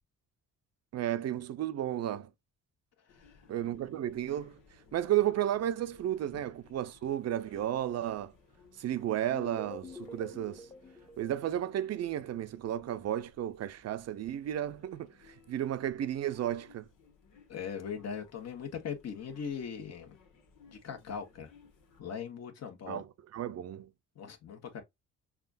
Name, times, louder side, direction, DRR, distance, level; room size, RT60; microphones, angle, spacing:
voice 1, 0.9-2.3 3.5-4.6 4.9-8.3 8.8-10.7 11.2-16.9 22.9-23.9, right 11 dB, 55° right, 0.6 m, -33 dB
sound 1, 3.1-22.0, left 5 dB, 90° left, 1.4 m, -62 dB
sound 2, 9.3-12.3, left 3 dB, 10° left, 0.8 m, -47 dB
voice 2, 17.5-20.2 20.7-21.5 22.0-23.0 24.1-24.8, left 7 dB, 55° left, 1.3 m, -40 dB
5.7 x 2.4 x 2.5 m
cardioid pair, 90°, 30 cm